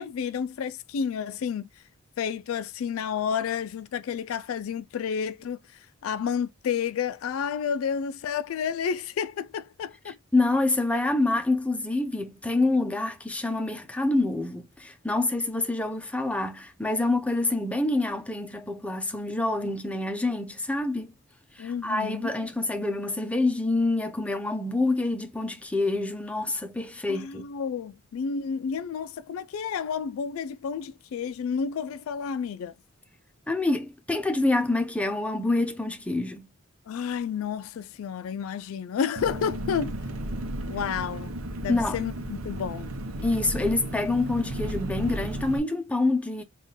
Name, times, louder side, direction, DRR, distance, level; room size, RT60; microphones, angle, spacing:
voice 1, 0.0-1.7 2.2-5.6 6.0-10.2 21.6-22.3 27.1-32.7 36.9-39.9 40.7-41.3 41.6-42.9, left 7 dB, 75° left, 0.3 m, -30 dB
voice 2, 10.3-21.1 21.6-27.5 33.5-36.5 41.7-42.0 43.2-46.4, left 2 dB, 5° left, 0.6 m, -26 dB
Engine, 39.2-45.6, right 1 dB, 90° right, 0.7 m, -34 dB
3.6 x 2.4 x 3.8 m
head